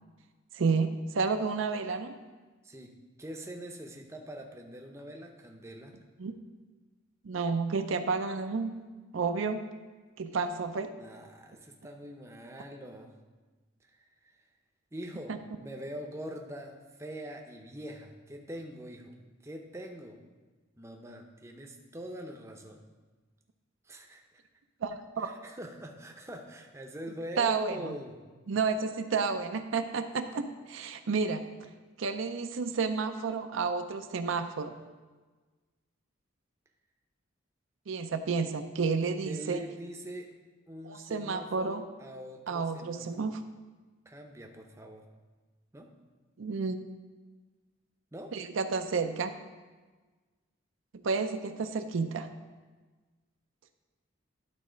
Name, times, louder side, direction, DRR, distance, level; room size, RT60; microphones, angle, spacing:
voice 1, 0.5-2.1 6.2-6.3 7.2-8.9 9.1-9.6 10.2-10.9 15.3-15.4 24.8-25.3 27.4-27.9 28.5-31.7 32.0-34.8 37.9-39.6 40.8-41.8 42.5-43.4 46.4-46.8 48.3-49.3 51.0-52.3, right 4 dB, 75° right, 7 dB, 0.5 m, -31 dB
voice 2, 3.2-5.9 10.9-13.1 14.0-14.4 14.9-19.2 19.4-20.2 20.8-22.8 23.9-24.2 25.2-28.2 39.2-40.3 40.7-43.3 44.1-45.0 45.7-45.9 48.1-48.3, equal, 15° right, 2 dB, 0.6 m, -43 dB
11.5 x 4.1 x 5.0 m, 1.3 s
head